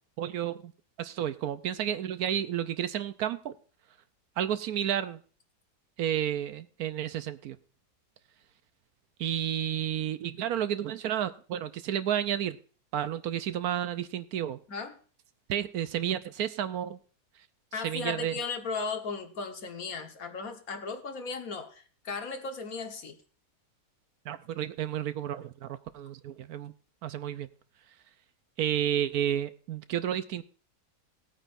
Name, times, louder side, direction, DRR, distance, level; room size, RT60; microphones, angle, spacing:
voice 1, 0.2-0.7 1.0-3.5 4.4-5.2 6.0-7.6 9.2-12.6 12.9-14.6 15.5-17.0 17.8-18.3 24.3-26.7 27.0-27.5 28.6-30.4, right 10 dB, 75° right, 13 dB, 1.1 m, -31 dB
voice 2, 17.7-23.2, left 4 dB, 65° left, 5 dB, 1.7 m, -36 dB
18.5 x 9.0 x 2.6 m, 0.39 s
omnidirectional pair, 1.7 m